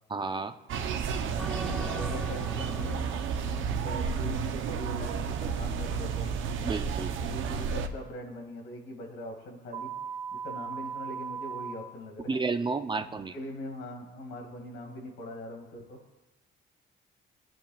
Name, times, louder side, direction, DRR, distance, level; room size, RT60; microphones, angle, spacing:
voice 1, 0.1-0.5 6.6-7.1 12.3-13.3, right 4 dB, 25° right, 9 dB, 0.5 m, -31 dB
sound 1, 0.7-7.9, right 6 dB, 80° right, 0.8 m, -31 dB
sound 2, 1.4-4.8, right 1 dB, 5° left, 2.1 m, -42 dB
voice 2, 1.6-3.2 3.6-6.4 7.2-9.9 10.3-12.3 13.0-16.0, left 1 dB, 90° left, 1 dB, 2.3 m, -42 dB
sound 3, 9.7-11.7, right 7 dB, 40° right, 1.0 m, -37 dB
18.0 x 9.1 x 2.4 m, 1.0 s
cardioid pair, 90°, 20 cm